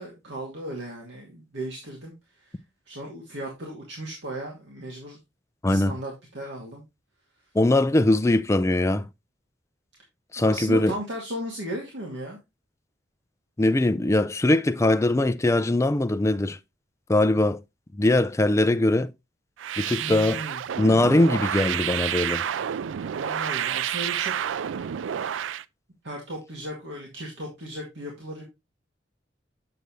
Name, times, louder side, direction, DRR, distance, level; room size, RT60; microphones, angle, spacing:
voice 1, 0.0-2.1 2.4-2.5 2.9-5.2 5.7-6.8 10.4-12.4 20.0-20.6 23.1-24.3 26.0-28.4, right 1 dB, 70° right, 2.2 m, -36 dB
voice 2, 7.5-9.1 10.3-10.9 13.6-16.6 17.1-17.6 18.0-19.1 19.8-20.4 20.8-22.4, left 2 dB, 15° left, 0.4 m, -21 dB
sound 1, 19.6-25.6, right 9 dB, 90° right, 0.4 m, -29 dB
7.9 x 6.7 x 3.1 m
head